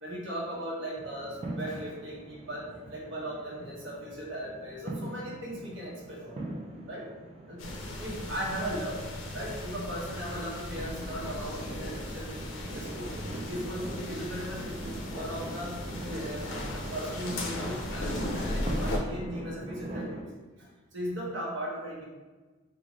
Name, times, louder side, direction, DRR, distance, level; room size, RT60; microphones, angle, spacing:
voice 1, 0.0-6.4 6.9-7.1 7.5-9.0 9.3-13.2 13.5-15.8 16.1-16.4 16.7-20.2 20.9-22.0, equal, 70° right, -4 dB, 1.0 m, -38 dB
sound 1, 1.0-20.2, right 1 dB, 30° right, 0.4 m, -42 dB
sound 2, 7.6-19.0, left 1 dB, 80° left, 0.6 m, -37 dB
3.6 x 2.5 x 3.1 m, 1.3 s
head